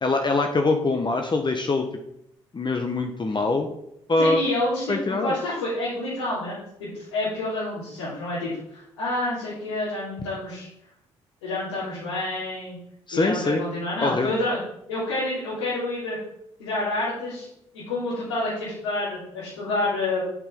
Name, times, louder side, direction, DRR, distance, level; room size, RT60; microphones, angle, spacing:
voice 1, 0.0-1.8 2.5-3.7 4.1-4.4 4.9-5.3 13.1-13.6 14.0-14.3, left 3 dB, 30° left, 4 dB, 1.2 m, -23 dB
voice 2, 4.2-10.7 11.4-12.8 13.1-14.6 14.9-16.2 16.6-17.5 17.7-20.2, left 2 dB, 85° left, -11 dB, 3.2 m, -28 dB
8.5 x 6.3 x 5.3 m, 0.78 s
hypercardioid pair, 45°, 15 cm